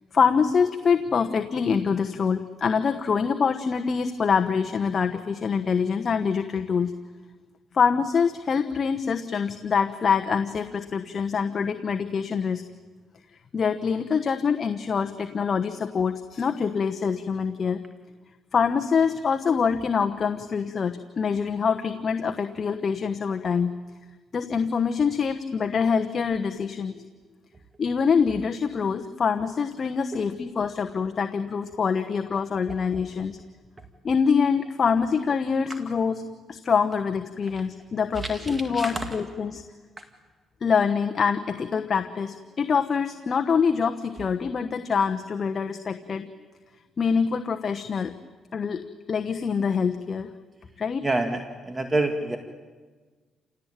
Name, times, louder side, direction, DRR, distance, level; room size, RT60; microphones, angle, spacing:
voice 1, 0.1-6.9 7.7-12.6 13.5-17.8 18.5-23.7 24.3-27.0 27.8-33.4 34.0-36.2 36.5-39.6 40.6-46.3 47.0-48.1 48.5-50.3 50.8-51.1, left 6 dB, 45° left, 6 dB, 1.1 m, -25 dB
voice 2, 38.1-39.1 40.0-40.1 51.0-52.4, right 2 dB, 25° right, 5 dB, 1.9 m, -28 dB
28.5 x 17.5 x 9.0 m, 1.4 s
cardioid pair, 90°, 0 cm